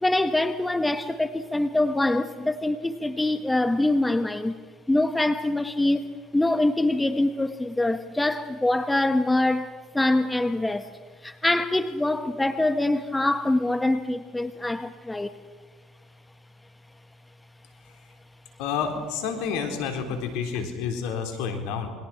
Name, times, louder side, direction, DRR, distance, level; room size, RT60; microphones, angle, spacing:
voice 1, 0.0-4.6 4.9-6.1 6.3-10.9 11.2-15.3, left 2 dB, 10° left, 1.5 m, -24 dB
voice 2, 18.6-21.9, left 6 dB, 75° left, 4.0 m, -29 dB
28.0 x 22.5 x 6.2 m
hypercardioid pair, 75°, 0 cm